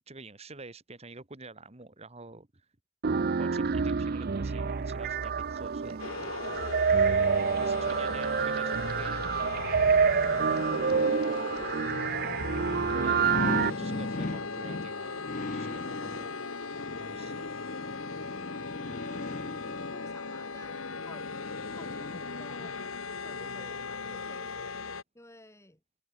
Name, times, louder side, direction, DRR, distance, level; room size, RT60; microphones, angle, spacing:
voice 1, 0.1-2.7 3.4-6.7 7.6-9.7 13.0-15.2 15.5-16.3 17.0-17.4, right 2 dB, 30° right, 1.7 m, -47 dB
sound 1, 3.0-13.7, right 5 dB, 50° right, 0.5 m, -27 dB
sound 2, 6.0-25.0, left 4 dB, 80° left, 1.7 m, -38 dB
sound 3, 8.8-22.7 23.1-23.2, left 2 dB, 40° left, 0.8 m, -40 dB
voice 2, 12.9-13.4 18.6-21.4 21.7-24.8 25.1-25.8, left 1 dB, 15° left, 6.5 m, -54 dB
head